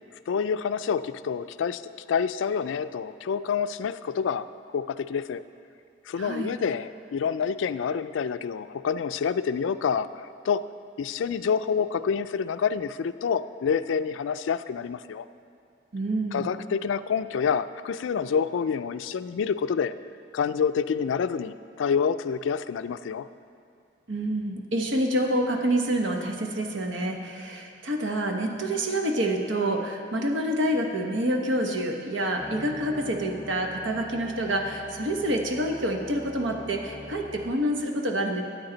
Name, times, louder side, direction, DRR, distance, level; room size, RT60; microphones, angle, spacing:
voice 1, 0.3-4.5 4.7-5.4 6.1-10.7 11.0-15.3 16.3-19.9 20.3-23.3, left 6 dB, 80° left, 13 dB, 0.3 m, -27 dB
voice 2, 6.2-6.6 15.9-16.5 24.1-38.4, right 1 dB, 80° right, 3 dB, 1.0 m, -27 dB
sound 1, 32.4-37.6, equal, 5° left, 1.2 m, -42 dB
13.0 x 8.8 x 3.9 m, 2.4 s
head